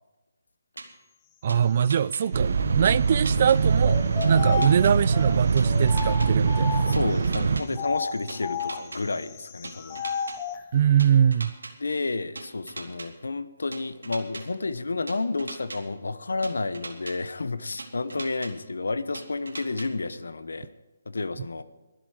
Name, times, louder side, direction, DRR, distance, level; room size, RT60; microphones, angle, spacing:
sound 1, 0.8-0.9 1.5-2.2 2.8-3.6 4.2-4.9 5.6-6.3 6.9-7.6 8.3-9.0 9.6-10.4 11.0-11.7 12.4-13.1 13.7-14.4 15.1-15.8 16.4-17.1 17.8-18.5 19.1-19.9, right 3 dB, 90° right, 2.3 m, -39 dB
voice 1, 1.4-4.0 4.3-7.3 10.7-11.5, right 8 dB, 45° right, 0.4 m, -23 dB
sound 2, 2.3-7.6, right 5 dB, 65° right, 1.0 m, -23 dB
sound 3, 3.8-7.2 7.7-10.6, left 7 dB, 25° left, 1.0 m, -33 dB
voice 2, 6.9-10.0 11.8-20.7 21.1-21.6, left 3 dB, 80° left, 1.0 m, -31 dB
23.0 x 7.7 x 4.9 m
figure-of-eight pair, 150°, 0 cm